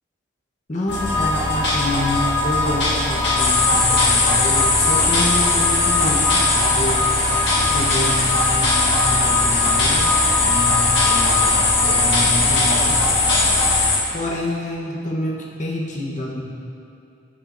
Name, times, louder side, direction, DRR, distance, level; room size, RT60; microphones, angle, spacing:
voice 1, 0.7-10.1 10.4-11.5 11.8-13.1 14.1-16.4, left 1 dB, 40° left, -2 dB, 0.9 m, -27 dB
sound 1, 0.9-13.9, left 2 dB, 55° left, 1.6 m, -21 dB
sound 2, 3.4-14.0, left 4 dB, 75° left, 1.5 m, -20 dB
14.5 x 5.3 x 2.6 m, 2.7 s
head